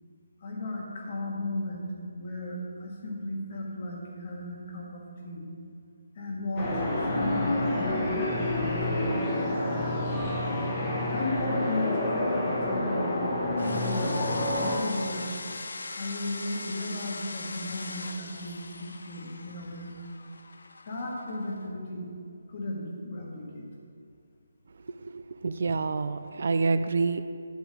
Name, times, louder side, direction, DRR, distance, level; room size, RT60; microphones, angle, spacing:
voice 1, 0.4-1.9 2.2-5.5 6.2-9.4 11.1-13.3 13.6-14.1 14.6-15.4 16.0-20.0 20.9-22.1 22.5-23.7, left 1 dB, 40° left, -2 dB, 1.7 m, -35 dB
sound 1, 6.6-14.8, left 1 dB, 20° left, 1.2 m, -28 dB
sound 2, 13.6-21.7, left 3 dB, 80° left, 0.6 m, -41 dB
voice 2, 25.0-27.2, right 4 dB, 60° right, 11 dB, 0.3 m, -28 dB
11.0 x 7.2 x 3.4 m, 2.3 s
hypercardioid pair, 165°, 0 cm